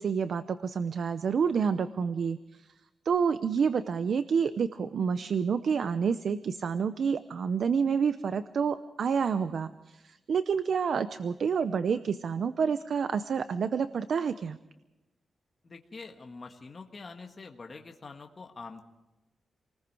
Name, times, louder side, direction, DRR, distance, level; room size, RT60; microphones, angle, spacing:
voice 1, 0.0-2.7 3.1-14.6, right 6 dB, 65° right, 12 dB, 0.7 m, -28 dB
voice 2, 15.6-18.8, left 4 dB, 35° left, 3 dB, 1.6 m, -45 dB
28.0 x 20.0 x 4.8 m, 1.0 s
wide cardioid pair, 130°, 0 cm